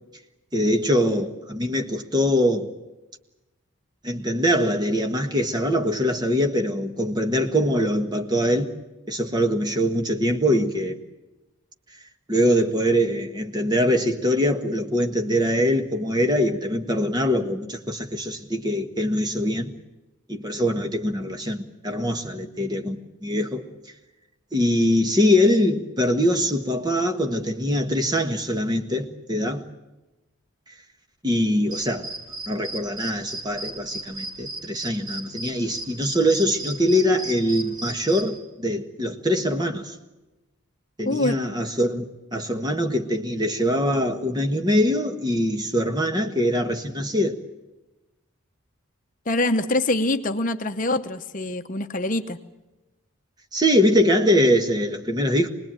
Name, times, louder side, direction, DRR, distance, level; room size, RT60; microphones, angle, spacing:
voice 1, 0.5-2.7 4.0-8.7 9.1-11.0 12.3-19.7 20.3-23.6 24.5-29.6 31.2-32.1 32.5-39.9 41.0-47.4 53.5-55.5, equal, 20° right, 1.5 m, -23 dB
sound 1, 31.7-38.4, right 2 dB, 75° right, 4.7 m, -35 dB
voice 2, 41.0-41.4 49.3-52.4, left 2 dB, 40° left, 0.9 m, -24 dB
26.0 x 20.5 x 9.1 m
head